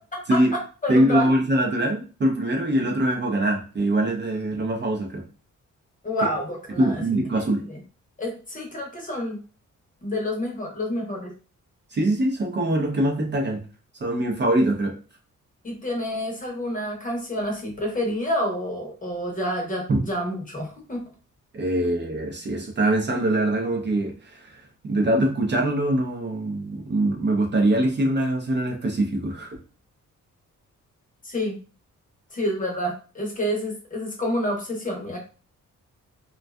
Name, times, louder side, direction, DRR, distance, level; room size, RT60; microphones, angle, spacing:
voice 1, 0.1-1.3 6.0-7.2 7.7-7.8 8.2-9.4 10.0-11.3 15.6-21.0 31.2-31.6 32.3-35.2, equal, 25° left, 0 dB, 0.7 m, -28 dB
voice 2, 0.9-5.2 6.8-7.6 11.9-13.6 14.0-15.0 19.9-20.0 21.5-29.6, right 1 dB, 35° right, 1 dB, 0.5 m, -23 dB
2.5 x 2.3 x 2.2 m, 0.35 s
wide cardioid pair, 130°, 30 cm